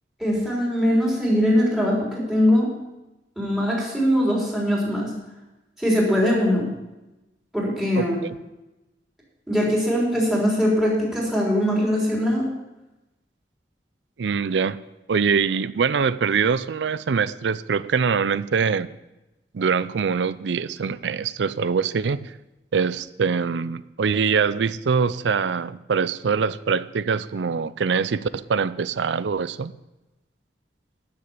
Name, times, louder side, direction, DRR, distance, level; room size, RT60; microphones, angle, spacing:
voice 1, 0.2-2.7 3.4-5.1 5.8-6.7 7.5-8.2 9.5-12.5, equal, 5° right, -4 dB, 3.7 m, -21 dB
voice 2, 8.0-8.4 14.2-14.8 15.1-18.9 19.5-22.3 22.7-29.7, right 5 dB, 85° right, 17 dB, 0.5 m, -23 dB
12.0 x 6.9 x 7.2 m, 1.0 s
head